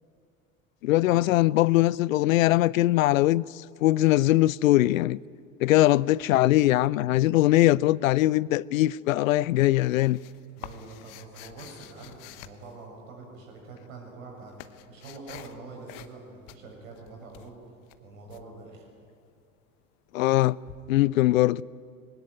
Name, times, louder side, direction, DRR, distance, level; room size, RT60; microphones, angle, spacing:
voice 1, 0.8-5.2 5.6-10.2 20.1-20.6 20.9-21.6, left 16 dB, 70° left, 0.5 m, -21 dB
sound 1, 9.5-13.3 14.0-15.6 15.9-16.2 16.5-18.4 20.7-20.8, left 14 dB, 55° left, 1.2 m, -48 dB
voice 2, 10.6-14.5 14.9-17.6 18.0-18.8, right 3 dB, 70° right, 6.9 m, -45 dB
21.0 x 18.0 x 9.5 m
figure-of-eight pair, 70°, 42 cm